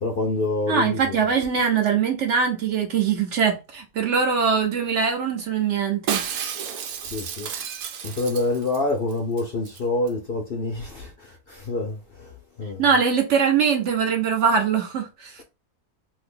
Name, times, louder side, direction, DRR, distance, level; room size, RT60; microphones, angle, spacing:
voice 1, 0.0-1.2 7.1-7.5 8.0-12.3 12.6-12.8, left 2 dB, 55° left, 0.7 m, -27 dB
voice 2, 0.7-6.2 12.8-15.4, right 6 dB, 65° right, 0.8 m, -22 dB
Shatter, 6.1-8.8 9.1-9.2 9.4-9.8 10.1-10.2, right 8 dB, 90° right, 1.1 m, -31 dB
2.8 x 2.4 x 3.6 m
omnidirectional pair, 1.5 m